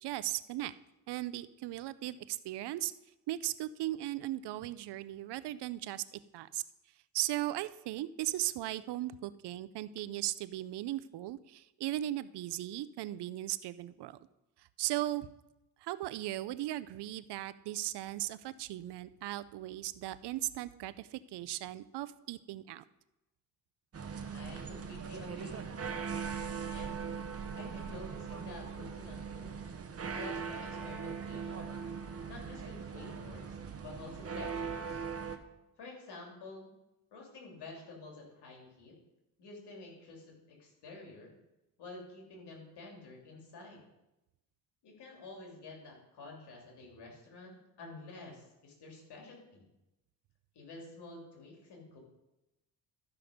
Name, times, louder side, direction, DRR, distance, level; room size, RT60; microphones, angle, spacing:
voice 1, 0.0-0.7 1.1-2.9 3.3-6.6 7.1-14.2 14.6-15.3 15.8-22.8, right 14 dB, 90° right, 16 dB, 0.6 m, -37 dB
sound 1, 23.9-35.4, right 6 dB, 35° right, 1.0 m, -40 dB
voice 2, 24.3-25.7 26.7-27.1 27.5-29.7 30.1-31.8 32.3-35.0 35.8-36.7 37.1-39.0 39.4-41.3 41.8-43.8 44.8-49.7 50.5-52.0, left 3 dB, 85° left, 0 dB, 3.0 m, -50 dB
12.5 x 5.9 x 5.1 m, 0.94 s
cardioid pair, 90°, 39 cm